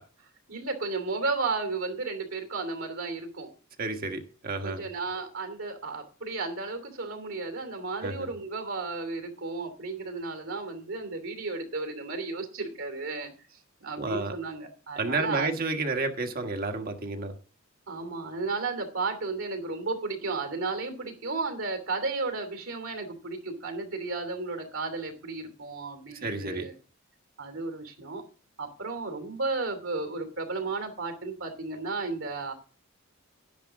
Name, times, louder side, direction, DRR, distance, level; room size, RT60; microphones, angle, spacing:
voice 1, 0.5-3.5 4.6-13.3 13.8-15.5 17.9-26.7 27.4-28.2 28.6-32.5, right 3 dB, 65° right, 7 dB, 2.8 m, -33 dB
voice 2, 3.8-4.8 8.0-8.3 14.0-14.3 15.0-17.3 26.2-26.7, right 3 dB, 45° right, 5 dB, 1.5 m, -31 dB
11.5 x 10.5 x 3.7 m, 0.37 s
head